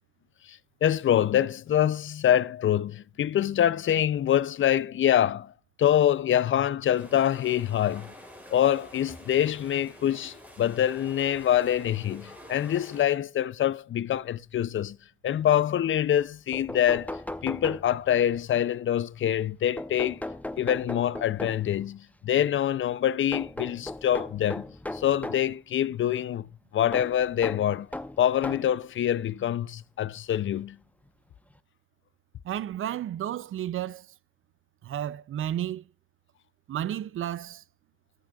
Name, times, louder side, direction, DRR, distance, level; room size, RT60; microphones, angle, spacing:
voice 1, 0.5-5.5 5.8-8.1 8.5-15.0 15.2-20.2 20.6-24.7 24.9-26.5 26.7-27.9 28.2-30.8, left 10 dB, 70° left, 0.4 m, -25 dB
sound 1, 7.0-13.0, equal, 10° right, 4.4 m, -48 dB
sound 2, 16.5-18.3 19.8-21.8 23.3-25.5 26.9-28.8 29.7-29.8 31.1-31.2 31.5-31.6, left 1 dB, 5° left, 0.8 m, -37 dB
voice 2, 32.4-34.0 34.8-35.8 36.7-37.6, right 11 dB, 85° right, 0.5 m, -32 dB
13.0 x 8.4 x 2.3 m
cardioid pair, 60°, 21 cm